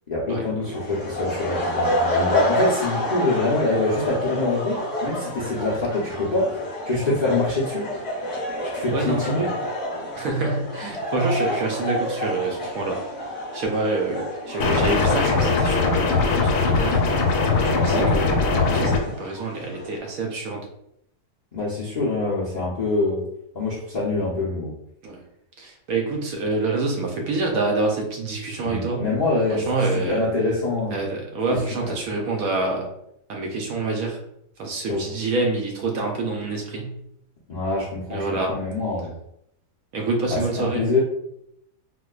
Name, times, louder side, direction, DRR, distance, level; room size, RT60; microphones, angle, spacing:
voice 1, 0.1-6.5 6.8-7.9 8.8-9.5 17.8-18.1 21.5-23.2 23.5-24.7 28.6-31.0 31.5-32.0 34.9-35.0 37.5-39.1 40.3-41.0, left 2 dB, 50° left, -7 dB, 0.5 m, -25 dB
sound 1, 0.6-20.0, left 1 dB, 25° left, 1.0 m, -29 dB
voice 2, 8.9-9.5 10.2-13.0 13.5-16.2 16.6-17.0 17.6-18.4 18.6-20.7 25.0-25.2 25.6-29.0 29.5-30.2 30.9-32.9 33.3-34.2 34.6-36.9 38.1-38.6 39.9-40.9, right 3 dB, 70° right, 1 dB, 1.0 m, -26 dB
sound 2, 14.6-19.0, left 4 dB, 90° left, 1.2 m, -20 dB
4.4 x 2.1 x 2.3 m, 0.77 s
omnidirectional pair, 1.8 m